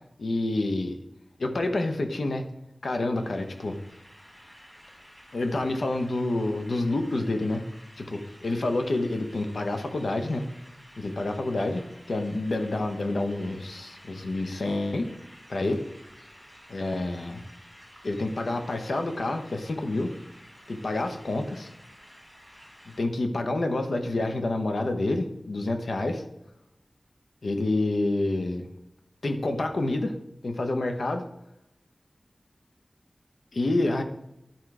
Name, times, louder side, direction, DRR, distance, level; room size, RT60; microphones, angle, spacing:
voice 1, 0.2-1.0 1.4-2.5 2.8-3.8 5.3-7.7 8.0-10.5 11.0-15.1 15.5-15.8 16.7-17.4 18.0-20.1 20.7-21.7 23.0-26.2 27.4-28.7 29.2-30.2 30.4-31.3 33.5-34.0, left 2 dB, 90° left, 6 dB, 0.9 m, -28 dB
sound 1, 3.1-23.0, equal, 5° left, 3.1 m, -52 dB
10.5 x 4.5 x 4.8 m, 0.84 s
wide cardioid pair, 70°, 0 cm